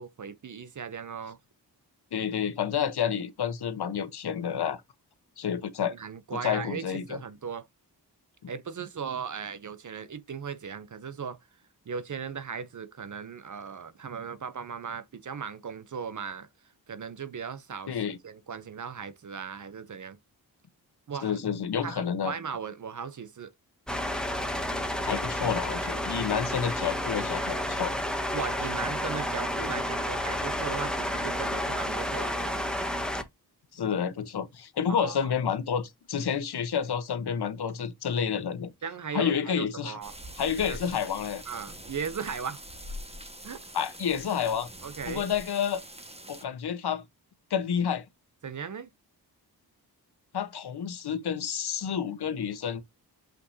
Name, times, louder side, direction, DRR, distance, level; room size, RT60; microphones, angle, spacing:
voice 1, 0.0-1.4 5.9-7.7 8.5-11.4 11.9-16.5 16.9-20.2 21.1-21.4 21.8-23.5 28.3-32.6 34.9-35.3 38.8-40.1 40.6-40.8 41.5-42.6 43.4-43.6 44.8-45.3 48.4-48.9, right 6 dB, 50° right, 0.7 m, -37 dB
voice 2, 2.1-4.8 5.4-5.9 6.3-7.2 8.4-8.5 17.9-18.2 21.2-22.3 25.1-27.9 33.7-38.7 39.1-40.0 40.4-41.4 43.7-44.7 45.1-45.8 46.3-47.0 47.5-48.1 50.3-52.8, left 7 dB, 75° left, 1.1 m, -29 dB
sound 1, 23.9-33.2, equal, ahead, 1.3 m, -31 dB
sound 2, 40.0-46.4, equal, 15° right, 1.5 m, -44 dB
6.0 x 5.7 x 2.8 m
cardioid pair, 70°, 39 cm